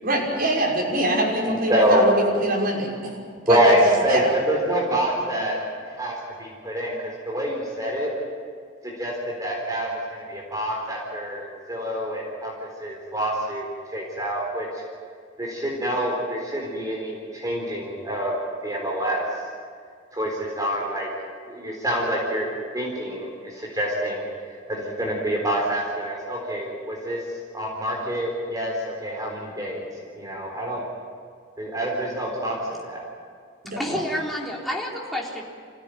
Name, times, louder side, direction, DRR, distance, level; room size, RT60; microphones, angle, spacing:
voice 1, 0.0-3.2 3.5-3.7 4.1-4.3 33.6-34.0, right 1 dB, 50° right, -2 dB, 6.0 m, -24 dB
voice 2, 1.7-2.1 3.5-5.6 5.9-8.1 8.8-14.8 15.4-19.2 20.1-21.1 21.5-22.5 22.7-24.2 24.7-27.2 27.5-29.9 30.2-30.8 31.6-32.6 32.8-33.1, equal, 20° right, -2 dB, 4.0 m, -26 dB
voice 3, 33.7-35.4, equal, ahead, -3 dB, 3.8 m, -29 dB
26.0 x 16.5 x 9.3 m, 2.1 s
head